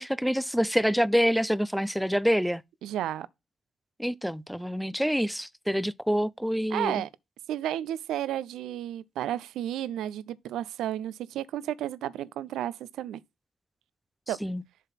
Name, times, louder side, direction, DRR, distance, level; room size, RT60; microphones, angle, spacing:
voice 1, 0.0-2.6 4.0-7.0 14.4-14.6, equal, ahead, 0.5 m, -26 dB
voice 2, 2.8-3.3 6.7-7.1 7.5-13.2 14.3-14.4, right 12 dB, 70° right, 0.4 m, -32 dB
7.3 x 3.9 x 5.7 m
hypercardioid pair, 45°, 0 cm